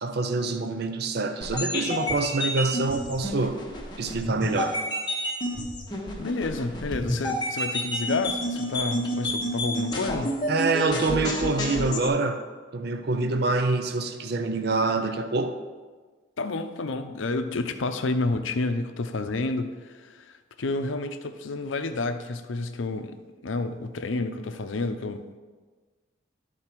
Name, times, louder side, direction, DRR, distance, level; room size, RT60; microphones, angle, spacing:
voice 1, 0.0-3.6 4.0-4.8 10.5-12.4 12.7-15.6, right 3 dB, 55° right, 8 dB, 0.5 m, -26 dB
sound 1, 1.4-12.1, equal, 20° left, 1.0 m, -30 dB
voice 2, 6.2-10.4 16.4-25.4, left 3 dB, 75° left, 8 dB, 0.6 m, -30 dB
11.5 x 4.1 x 4.5 m, 1.4 s
head